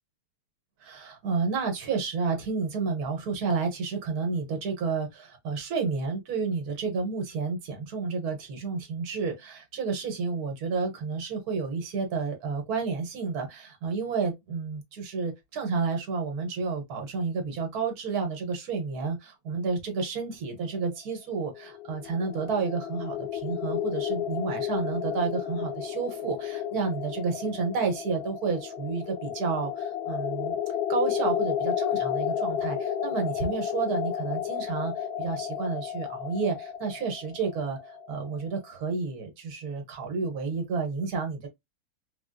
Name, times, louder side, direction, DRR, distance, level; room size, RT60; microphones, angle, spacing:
voice 1, 0.8-30.6 30.9-41.5, right 4 dB, 75° right, 1.4 m, -31 dB
sound 1, 21.5-38.4, left 9 dB, 85° left, 1.1 m, -32 dB
3.5 x 2.2 x 2.4 m
omnidirectional pair, 1.6 m